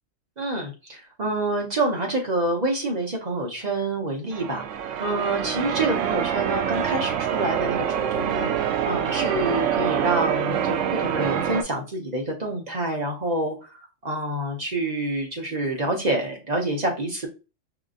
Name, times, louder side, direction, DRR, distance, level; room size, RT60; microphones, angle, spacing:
voice 1, 0.4-4.6 5.0-8.5 8.8-13.5 14.0-17.3, right 2 dB, 35° right, 0 dB, 1.0 m, -27 dB
Church bell, 4.3-11.6, right 9 dB, 75° right, 0.9 m, -26 dB
4.9 x 2.6 x 2.4 m, 0.31 s
omnidirectional pair, 1.3 m